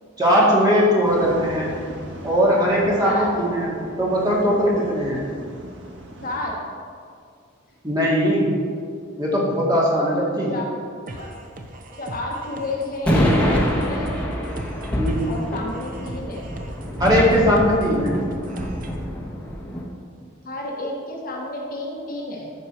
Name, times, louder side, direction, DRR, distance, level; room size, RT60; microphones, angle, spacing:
voice 1, 0.2-1.7 2.2-3.7 4.0-5.3 7.8-8.5 9.2-10.5 15.0-15.3 17.0-18.1, equal, 20° right, -5 dB, 2.2 m, -19 dB
sound 1, 1.0-6.4, right 1 dB, 60° right, 1.3 m, -39 dB
voice 2, 6.2-6.6 10.5-10.7 11.1-11.4 11.9-14.1 15.2-16.6 20.4-22.5, left 2 dB, 45° left, -2 dB, 1.4 m, -31 dB
sound 2, 11.1-19.0, right 1 dB, 40° right, 0.7 m, -38 dB
sound 3, 13.1-19.8, equal, 5° left, 1.4 m, -25 dB
13.5 x 5.4 x 4.6 m, 2.2 s
head